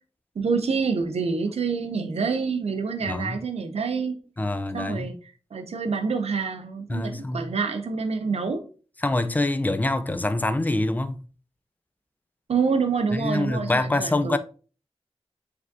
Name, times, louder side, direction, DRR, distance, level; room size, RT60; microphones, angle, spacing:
voice 1, 0.4-4.2 4.7-5.1 5.5-8.7 12.5-14.4, right 5 dB, 75° right, 0.5 m, -27 dB
voice 2, 3.1-3.4 4.4-5.1 6.9-7.5 9.0-11.3 13.1-14.4, left 2 dB, 15° left, 0.3 m, -25 dB
4.8 x 3.4 x 2.6 m
wide cardioid pair, 100°, 11 cm